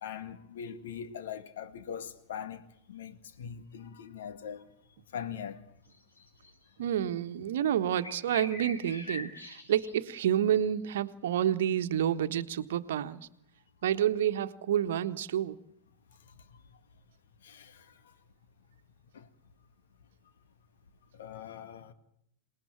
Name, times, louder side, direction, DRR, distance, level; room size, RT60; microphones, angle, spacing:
voice 1, 0.0-4.7 5.1-5.6 17.4-17.9 19.1-19.3 21.1-21.9, left 8 dB, 60° left, 2.0 m, -41 dB
sound 1, 6.0-6.5 6.9-7.0 8.0-9.9 10.5-10.7 11.4-11.5, left 1 dB, 80° left, 7.6 m, -42 dB
voice 2, 6.8-13.2 13.8-15.6, right 10 dB, 60° right, 1.3 m, -29 dB
27.0 x 19.5 x 9.3 m
figure-of-eight pair, 90°, 0 cm